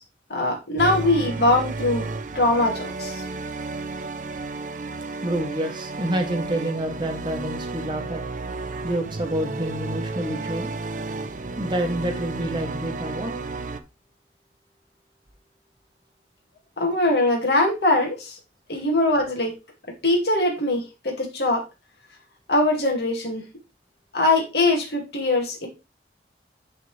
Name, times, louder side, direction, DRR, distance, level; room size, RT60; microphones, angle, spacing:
voice 1, 0.3-2.1 2.3-3.2 16.8-18.4 18.7-19.5 20.0-21.6 22.5-23.4 24.1-25.7, left 2 dB, 65° left, 0 dB, 2.3 m, -22 dB
sound 1, 0.8-13.8, right 3 dB, 45° right, 0.6 m, -32 dB
voice 2, 5.2-8.2 8.8-10.7 11.6-13.3, right 1 dB, 25° right, 4 dB, 1.1 m, -28 dB
10.5 x 4.1 x 3.3 m, 0.27 s
head